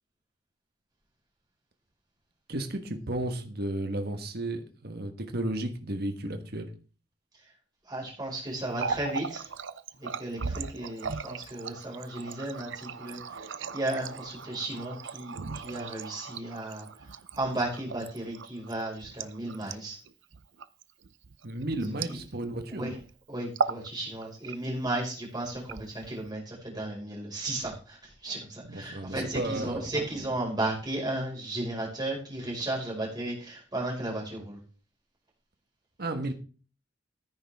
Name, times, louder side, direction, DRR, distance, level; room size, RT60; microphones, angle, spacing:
voice 1, 2.5-6.7 21.4-22.8 28.6-29.9 36.0-36.3, right 1 dB, 55° right, 6 dB, 1.4 m, -33 dB
voice 2, 7.9-9.5 10.0-13.4 13.7-16.9 17.3-20.0 22.7-23.0 23.3-34.6, right 1 dB, 20° right, -3 dB, 5.4 m, -34 dB
Water tap faucet, 8.6-22.6 22.9-23.1 23.4-23.9 24.2-24.9 25.5-26.3, right 5 dB, 70° right, 0.7 m, -37 dB
15.0 x 9.5 x 3.6 m, 0.38 s
head